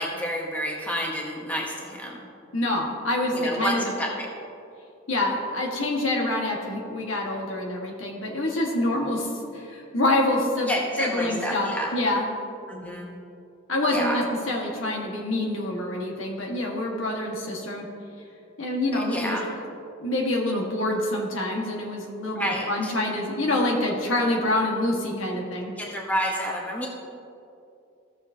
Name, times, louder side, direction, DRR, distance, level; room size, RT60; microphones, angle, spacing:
voice 1, 0.0-2.2 3.3-4.3 10.7-11.9 12.7-13.1 13.9-14.2 18.9-19.5 22.3-22.9 25.8-26.9, equal, 5° left, -2 dB, 1.0 m, -29 dB
voice 2, 2.5-3.9 5.1-10.7 11.0-12.3 13.7-17.9 18.6-19.4 20.0-25.7, left 1 dB, 80° left, -1 dB, 1.6 m, -26 dB
15.5 x 6.8 x 2.8 m, 2.6 s
head